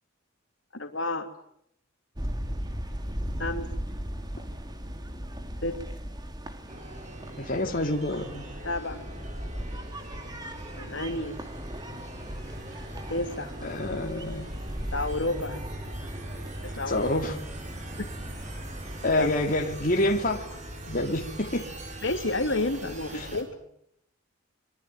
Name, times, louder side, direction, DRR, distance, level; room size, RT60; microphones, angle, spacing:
voice 1, 0.7-1.3 3.4-3.7 5.6-5.8 8.6-9.1 10.8-11.4 13.1-13.5 14.9-15.7 16.6-17.1 18.0-18.1 19.2-19.3 22.0-23.6, left 2 dB, 65° left, 6 dB, 3.0 m, -30 dB
sound 1, 2.2-19.5, equal, 20° right, 2.4 m, -38 dB
sound 2, 6.7-23.4, right 1 dB, 35° right, 5.8 m, -41 dB
voice 2, 7.4-8.4 13.6-14.5 16.9-17.4 19.0-20.5 20.9-21.7 23.1-23.3, left 1 dB, 40° left, 2 dB, 2.9 m, -27 dB
25.5 x 24.0 x 9.1 m, 0.73 s
head